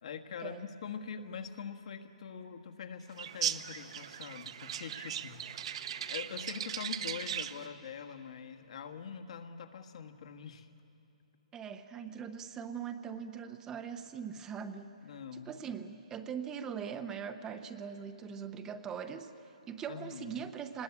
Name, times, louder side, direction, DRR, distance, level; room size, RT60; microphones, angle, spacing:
voice 1, 0.0-5.4 6.1-10.7 15.0-15.6 19.9-20.3, left 7 dB, 60° left, 6 dB, 1.6 m, -44 dB
sound 1, 3.2-7.7, right 9 dB, 50° right, 0.8 m, -38 dB
voice 2, 11.5-15.0 15.3-20.8, right 7 dB, 15° right, 8 dB, 0.6 m, -41 dB
24.0 x 20.5 x 8.5 m, 2.9 s
hypercardioid pair, 160°, 4 cm